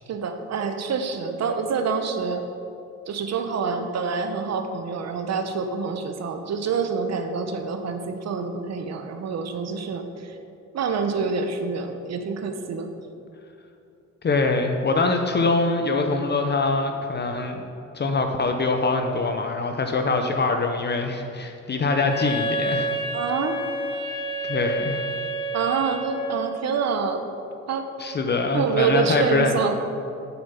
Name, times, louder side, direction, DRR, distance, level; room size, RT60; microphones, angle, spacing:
voice 1, 0.1-2.4 3.1-10.3 10.7-12.9 23.1-23.6 25.5-27.2 27.7-27.9 28.5-29.8, right 5 dB, 60° right, 7 dB, 1.0 m, -26 dB
voice 2, 14.2-17.6 17.9-22.9 24.5-25.0 28.0-29.6, left 3 dB, 35° left, 4 dB, 0.7 m, -23 dB
Wind instrument woodwind instrument, 22.1-26.5, right 1 dB, 15° left, 1.9 m, -29 dB
7.3 x 6.8 x 5.7 m, 2.6 s
cardioid pair, 90°, 30 cm